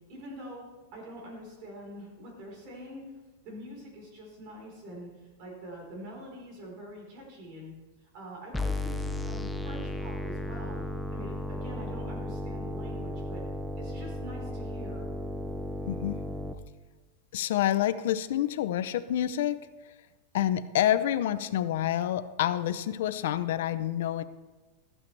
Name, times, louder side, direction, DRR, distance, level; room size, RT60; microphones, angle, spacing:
voice 1, 0.1-3.0 3.4-7.7 8.0-13.4 13.8-15.1, equal, 45° right, -1 dB, 4.1 m, -45 dB
sound 1, 8.5-16.5, left 1 dB, 5° left, 0.4 m, -34 dB
voice 2, 15.9-16.2 17.3-19.6 20.3-24.2, left 12 dB, 70° left, 12 dB, 0.5 m, -28 dB
14.0 x 8.7 x 3.3 m, 1.2 s
supercardioid pair, 160°, 0 cm